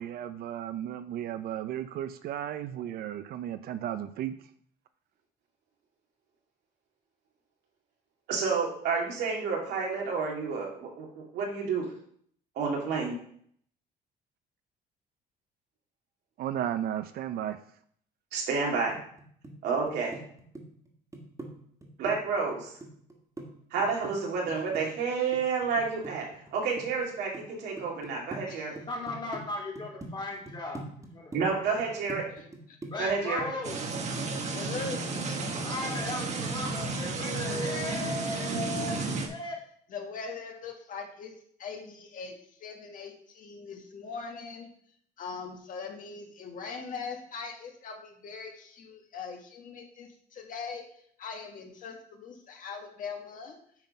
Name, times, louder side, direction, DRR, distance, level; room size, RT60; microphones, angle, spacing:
voice 1, 0.0-4.3 16.4-17.6, right 11 dB, 65° right, 0.5 m, -34 dB
voice 2, 8.3-11.9 12.6-13.2 18.3-18.9 19.6-20.1 22.0-22.7 23.7-28.7 31.3-32.2 33.0-33.4, right 5 dB, 85° right, 2.4 m, -30 dB
sound 1, 18.9-19.6 19.9-21.5 21.8-23.5 23.8-26.5 26.8-27.4 27.8-28.4 28.8-29.4 29.8-30.1 30.5-33.1 33.4-33.6, right 2 dB, 20° right, 1.8 m, -42 dB
voice 3, 28.8-30.8 31.1-32.0 32.9-33.8 35.6-39.6, left 2 dB, 25° left, 2.5 m, -37 dB
voice 4, 32.4-32.8 34.5-35.2 39.9-41.3 41.6-44.7 45.2-50.8 51.2-53.6, left 5 dB, 55° left, 1.6 m, -41 dB
sound 2, 33.6-39.3, right 3 dB, 40° right, 1.3 m, -32 dB
9.0 x 3.9 x 5.4 m
cardioid pair, 110°, 17 cm